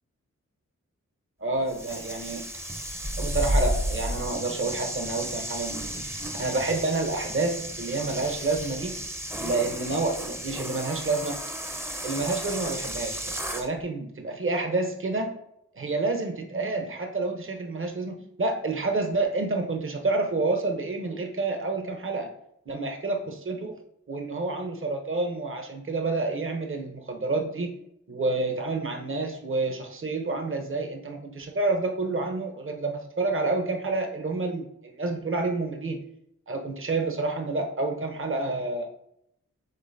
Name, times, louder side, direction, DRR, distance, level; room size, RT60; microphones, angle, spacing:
voice 1, 1.4-2.4 3.2-6.0 6.4-9.0 9.4-11.4 12.0-15.3 15.7-22.3 22.7-23.7 24.1-27.7 28.1-36.0 36.5-38.9, right 3 dB, 40° right, 3 dB, 0.9 m, -29 dB
sound 1, 1.7-13.7, equal, 10° right, 0.7 m, -33 dB
5.3 x 3.6 x 2.7 m, 0.76 s
cardioid pair, 40°, 31 cm